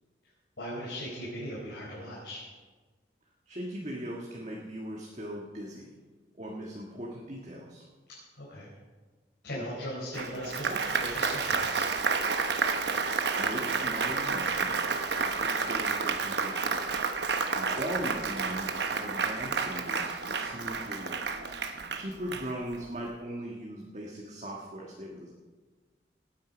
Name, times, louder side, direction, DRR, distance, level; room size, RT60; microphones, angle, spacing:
voice 1, 0.6-2.4 8.3-8.7 9.4-11.9, equal, 85° left, -6 dB, 4.4 m, -38 dB
voice 2, 3.5-6.0 6.3-7.9 13.4-21.4 21.9-25.3, equal, 40° right, -2 dB, 1.5 m, -39 dB
Applause, 10.1-22.9, right 4 dB, 70° right, 0.9 m, -30 dB
18.5 x 9.4 x 5.2 m, 1.4 s
head